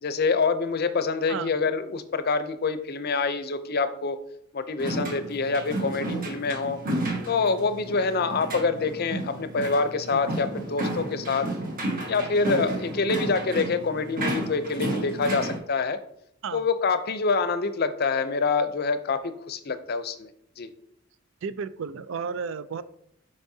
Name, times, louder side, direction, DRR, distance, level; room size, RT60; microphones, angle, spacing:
voice 1, 0.0-4.2 4.5-6.8 7.3-11.5 12.1-16.0 16.5-20.3 20.6-20.7, left 4 dB, 50° left, 11 dB, 0.5 m, -26 dB
sound 1, 4.8-15.6, right 1 dB, 45° right, 1.4 m, -32 dB
voice 2, 21.4-22.8, right 6 dB, 70° right, 14 dB, 0.4 m, -33 dB
8.2 x 5.3 x 2.7 m, 0.73 s
head